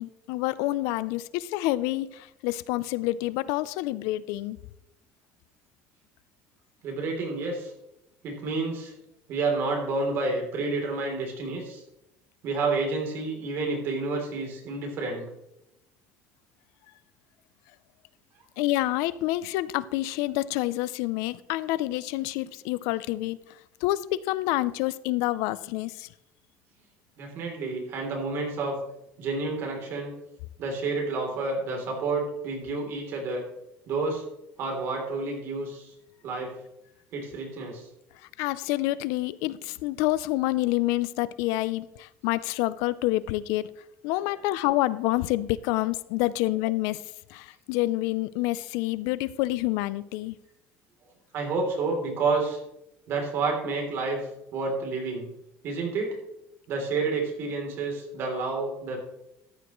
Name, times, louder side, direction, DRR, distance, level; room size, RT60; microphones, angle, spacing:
voice 1, 0.0-4.6 18.6-26.1 38.4-43.7 44.0-47.0 47.3-50.4, left 17 dB, 75° left, 18 dB, 0.4 m, -28 dB
voice 2, 6.8-7.7 8.2-8.9 9.3-11.8 12.4-15.2 27.2-28.8 29.2-30.1 30.6-33.4 33.9-34.2 34.6-35.9 36.2-36.5 37.1-37.9 51.3-52.6 53.1-55.3 55.6-56.2 56.7-59.0, right 3 dB, 45° right, 1 dB, 3.1 m, -29 dB
14.0 x 10.0 x 3.1 m, 0.85 s
cardioid pair, 170°, 6 cm